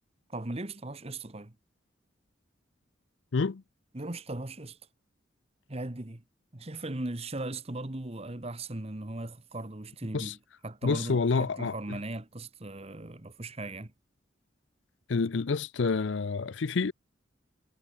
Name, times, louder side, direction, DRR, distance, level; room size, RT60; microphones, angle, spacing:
voice 1, 0.3-1.5 3.9-4.8 5.7-6.2 6.5-10.4 10.6-13.9, right 2 dB, 30° right, 1.3 m, -38 dB
voice 2, 3.3-3.6 10.1-10.3 10.8-12.0 15.1-16.9, left 4 dB, 70° left, 0.6 m, -28 dB
head